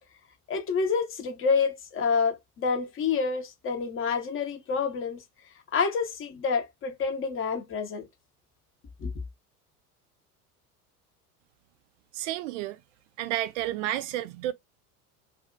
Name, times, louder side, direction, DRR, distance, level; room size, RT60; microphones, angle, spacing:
voice 1, 0.5-5.2 5.7-8.1 9.0-9.1, left 5 dB, 30° left, 0.8 m, -28 dB
voice 2, 12.1-12.8 13.2-14.5, right 14 dB, 55° right, 0.5 m, -31 dB
2.5 x 2.3 x 2.5 m
figure-of-eight pair, 75°, 45 cm